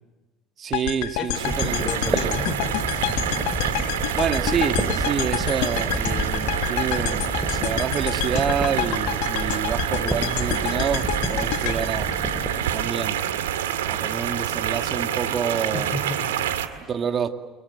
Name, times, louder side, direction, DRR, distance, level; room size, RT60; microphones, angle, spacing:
voice 1, 0.6-2.4 4.1-12.1 12.7-13.3 13.9-16.0 16.9-17.3, right 7 dB, 40° right, 2.2 m, -28 dB
sound 1, 0.7-12.9, left 16 dB, 70° left, 1.2 m, -29 dB
voice 2, 1.2-2.8 15.7-16.5, left 3 dB, 40° left, 3.9 m, -33 dB
sound 2, 1.3-16.7, right 10 dB, 80° right, 1.9 m, -28 dB
sound 3, 1.5-12.5, right 2 dB, 15° right, 4.8 m, -30 dB
30.0 x 23.0 x 8.0 m
hypercardioid pair, 70°, 0 cm